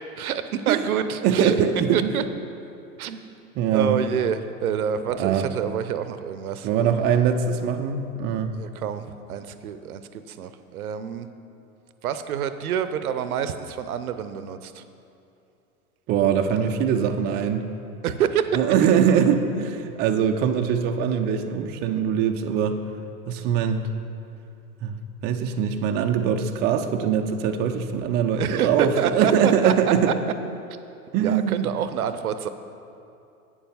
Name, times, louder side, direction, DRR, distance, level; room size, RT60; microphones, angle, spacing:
voice 1, 0.2-1.5 1.9-2.2 3.0-3.2 3.7-6.7 8.5-10.0 10.3-11.3 12.0-14.8 16.5-16.7 18.0-18.6 28.3-29.7 31.2-32.5, right 8 dB, 70° right, 11 dB, 0.7 m, -27 dB
voice 2, 1.2-2.1 3.6-4.0 5.1-5.5 6.6-8.5 16.1-17.6 18.5-22.8 23.3-23.9 24.8-25.0 25.2-30.1 31.1-31.7, right 8 dB, 25° right, 5 dB, 0.4 m, -22 dB
8.7 x 7.1 x 5.6 m, 2.6 s
hypercardioid pair, 95°, 45 cm